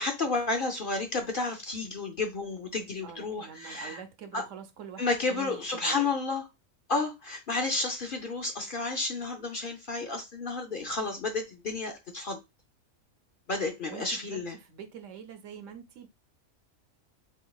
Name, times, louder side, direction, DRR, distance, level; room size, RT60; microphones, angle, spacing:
voice 1, 0.0-4.0 4.3-4.4 5.0-6.4 6.9-12.4 13.5-14.6, left 3 dB, 50° left, 0.7 m, -31 dB
voice 2, 3.0-6.1 13.6-16.1, right 7 dB, 70° right, 1.0 m, -45 dB
4.0 x 3.7 x 2.3 m
omnidirectional pair, 1.4 m